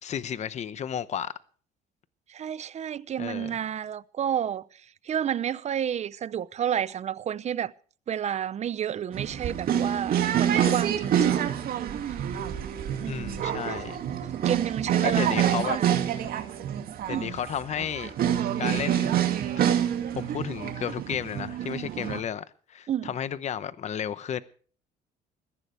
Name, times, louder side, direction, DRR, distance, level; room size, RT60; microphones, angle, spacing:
voice 1, 0.0-1.3 3.2-3.6 13.1-14.0 15.0-15.8 17.1-18.1 18.6-19.1 19.6-19.7 20.1-24.4, left 9 dB, 45° left, 0.8 m, -33 dB
voice 2, 2.3-7.7 8.1-11.6 12.1-12.3 13.0-13.6 14.3-15.9 17.1-17.3 22.9-23.1, right 9 dB, 40° right, 0.7 m, -31 dB
sound 1, 9.1-22.2, right 10 dB, 60° right, 2.3 m, -27 dB
21.5 x 14.5 x 3.4 m
cardioid pair, 110°, 17 cm